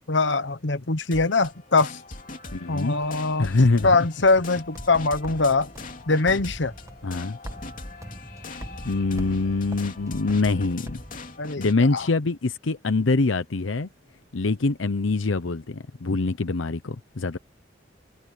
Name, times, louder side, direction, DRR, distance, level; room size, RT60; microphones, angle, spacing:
voice 1, 0.1-2.0 2.7-3.5 3.8-5.7 6.1-6.7 11.4-11.7 11.9-12.1, left 3 dB, 65° left, 1.1 m, -22 dB
sound 1, 1.1-11.8, left 3 dB, 45° left, 2.8 m, -41 dB
voice 2, 2.5-3.0 3.4-4.1 7.0-7.4 8.8-11.0 11.6-13.9 14.3-17.4, left 3 dB, 85° left, 0.8 m, -24 dB
sound 2, 3.0-11.8, equal, 15° right, 1.5 m, -43 dB
head